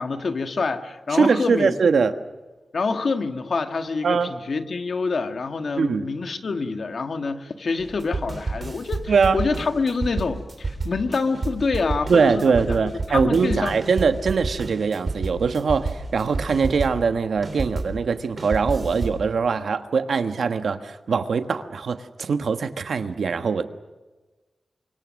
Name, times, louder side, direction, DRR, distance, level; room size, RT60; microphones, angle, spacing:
voice 1, 0.0-1.7 2.7-12.8 13.1-13.7, left 4 dB, 65° left, 1.6 m, -26 dB
voice 2, 1.1-2.1 4.0-4.3 5.8-6.1 9.1-9.4 12.1-23.6, right 5 dB, 85° right, 1.3 m, -22 dB
sound 1, 7.8-18.0 18.4-19.2, right 3 dB, 45° right, 3.6 m, -30 dB
29.5 x 24.5 x 6.4 m
wide cardioid pair, 110°, 0 cm